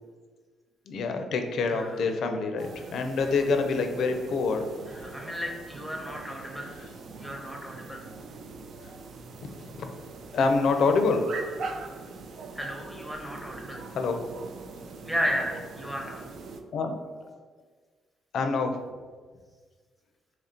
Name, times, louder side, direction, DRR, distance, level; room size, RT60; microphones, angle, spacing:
voice 1, 0.9-5.0 9.6-9.9 10.3-11.2 13.9-14.2 16.7-16.9 18.3-18.8, left 4 dB, 70° left, 5 dB, 0.4 m, -26 dB
voice 2, 1.7-2.0 4.9-6.9 7.2-8.0 12.5-13.8 15.0-16.2, equal, ahead, 0 dB, 0.8 m, -34 dB
sound 1, 2.6-16.6, right 3 dB, 65° right, 0.3 m, -42 dB
3.0 x 2.5 x 4.3 m, 1.5 s
cardioid pair, 90°, 0 cm